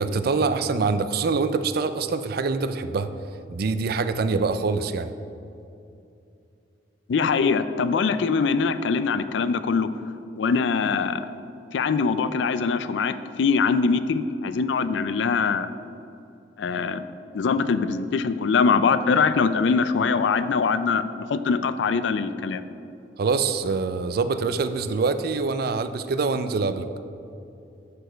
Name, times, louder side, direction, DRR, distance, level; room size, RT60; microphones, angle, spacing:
voice 1, 0.0-3.1 3.5-5.1 23.2-26.9, right 4 dB, 55° right, 11 dB, 0.4 m, -25 dB
voice 2, 7.1-9.9 10.4-11.3 11.7-15.7 16.6-17.0 17.3-22.6, left 5 dB, 75° left, 12 dB, 0.4 m, -23 dB
6.8 x 6.3 x 5.0 m, 2.6 s
head